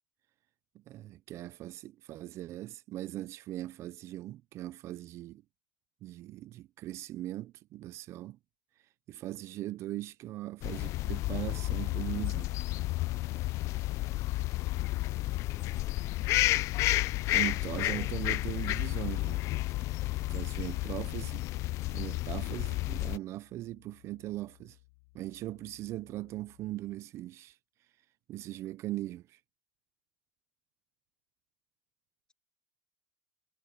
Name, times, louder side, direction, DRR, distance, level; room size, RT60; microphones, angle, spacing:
voice 1, 0.9-5.4 6.0-8.4 9.1-12.5 17.3-19.4 20.3-21.5 21.9-24.8 25.1-27.6 28.3-29.4, right 15 dB, 45° right, 0.5 m, -40 dB
sound 1, 10.6-23.2, left 18 dB, 50° left, 0.4 m, -31 dB
voice 2, 15.2-16.0 17.5-18.2, left 3 dB, 15° left, 1.8 m, -53 dB
sound 2, 17.5-27.0, left 27 dB, 80° left, 6.0 m, -66 dB
supercardioid pair, 130°, 6 cm